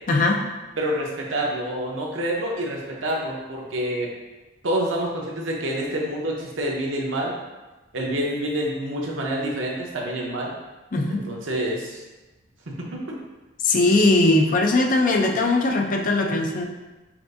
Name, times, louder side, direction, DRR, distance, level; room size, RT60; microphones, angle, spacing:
voice 1, 0.1-0.5 10.9-11.3 13.6-16.6, left 2 dB, 45° left, 2 dB, 0.5 m, -20 dB
voice 2, 0.8-4.1 4.6-7.4 7.9-10.5 11.1-12.0 12.7-13.2, right 1 dB, 80° right, -2 dB, 0.8 m, -27 dB
5.8 x 2.5 x 2.6 m, 1.1 s
head